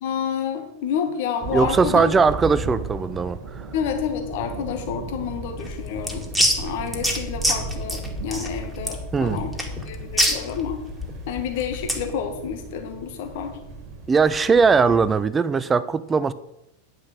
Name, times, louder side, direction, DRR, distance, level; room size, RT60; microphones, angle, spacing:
voice 1, 0.0-2.0 3.7-6.3 6.6-8.0 8.2-9.5 9.8-10.8 11.3-13.6, left 7 dB, 55° left, 1.4 m, -29 dB
sound 1, 1.4-15.3, right 4 dB, 40° right, 2.0 m, -36 dB
voice 2, 1.5-3.6 9.1-9.4 14.1-16.3, right 5 dB, 20° right, 0.5 m, -20 dB
sound 2, 5.6-12.1, equal, ahead, 2.1 m, -26 dB
9.7 x 6.1 x 6.5 m
figure-of-eight pair, 90°, 0 cm